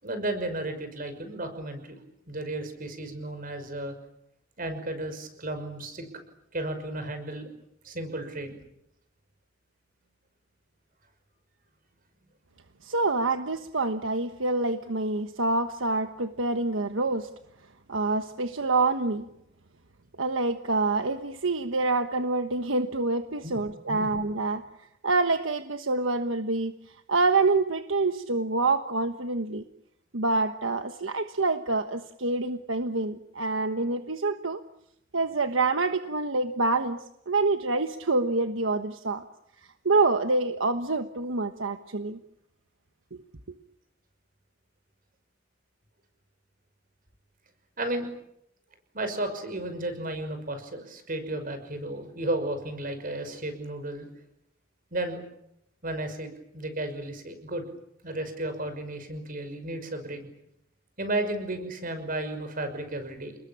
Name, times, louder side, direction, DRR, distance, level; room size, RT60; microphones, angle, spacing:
voice 1, 0.0-2.0 2.3-3.9 4.6-6.1 6.5-7.5 7.8-8.5 23.4-23.6 23.9-24.1 47.8-48.1 48.9-54.1 54.9-55.2 55.8-57.6 58.0-60.2 61.0-63.4, right 1 dB, 45° right, 9 dB, 5.8 m, -33 dB
voice 2, 12.8-17.3 17.9-19.2 20.2-24.6 25.0-26.7 27.1-29.6 30.1-34.6 35.1-37.0 37.3-39.2 39.8-42.2, right 3 dB, 80° right, 8 dB, 1.3 m, -26 dB
29.5 x 21.0 x 8.8 m, 0.78 s
head